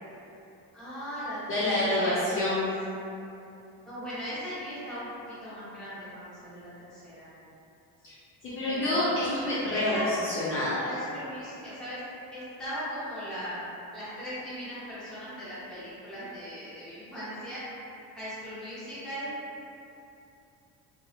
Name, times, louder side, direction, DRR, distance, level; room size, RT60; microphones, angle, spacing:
voice 1, 0.7-2.4 3.8-5.1 5.4-7.3 8.6-9.1 9.7-10.2 10.9-12.0 12.3-13.6 13.9-17.6 18.1-19.3, equal, ahead, -13 dB, 0.9 m, -38 dB
voice 2, 1.5-2.7 8.0-8.2 8.4-10.9, left 1 dB, 45° left, -10 dB, 0.5 m, -27 dB
2.5 x 2.0 x 2.8 m, 2.8 s
cardioid pair, 140°, 30 cm